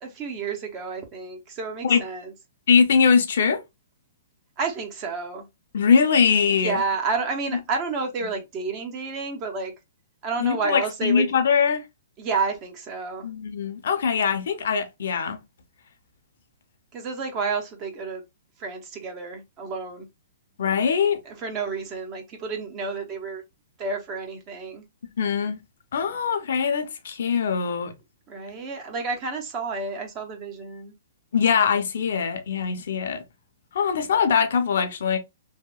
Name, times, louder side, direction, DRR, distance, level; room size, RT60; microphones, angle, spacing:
voice 1, 0.0-2.3 4.6-5.5 6.5-9.7 10.2-11.3 12.2-13.3 16.9-18.2 18.6-20.1 21.2-23.4 23.8-24.8 28.3-30.9, right 4 dB, 25° right, 0.6 m, -30 dB
voice 2, 2.7-3.6 5.7-6.8 10.4-11.8 13.2-15.4 20.6-21.2 25.0-25.6 25.9-27.9 31.3-33.2 33.7-35.2, left 6 dB, 65° left, 0.6 m, -22 dB
2.8 x 2.1 x 2.3 m
hypercardioid pair, 160°, 0 cm